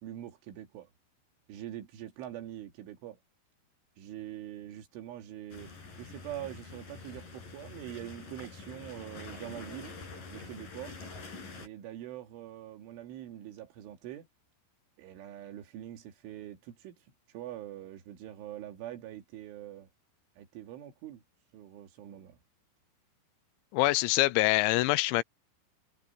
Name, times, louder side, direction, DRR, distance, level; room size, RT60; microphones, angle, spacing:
voice 1, 0.0-0.9 1.5-3.2 4.0-5.7 6.0-9.9 10.3-10.9 11.6-14.3 15.0-17.0 17.3-19.9 20.4-21.2 21.5-22.4, right 12 dB, 85° right, 4.8 m, -44 dB
sound 1, 5.5-11.7, left 4 dB, 45° left, 7.7 m, -46 dB
voice 2, 23.7-25.2, left 20 dB, 85° left, 2.9 m, -25 dB
omnidirectional pair, 5.5 m